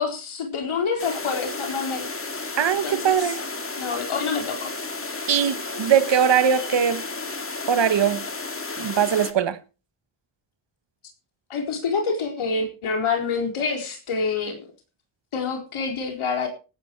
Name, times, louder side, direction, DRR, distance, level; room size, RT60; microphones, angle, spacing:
voice 1, 0.0-2.1 2.8-3.4 3.8-4.7 11.5-14.7 15.3-16.5, left 5 dB, 80° left, 4.3 m, -27 dB
sound 1, 1.0-9.3, left 3 dB, 25° left, 2.1 m, -33 dB
voice 2, 2.6-3.4 5.3-7.0 7.7-8.2 8.8-9.6, right 8 dB, 60° right, 1.4 m, -21 dB
18.5 x 10.0 x 4.6 m
cardioid pair, 70°, 48 cm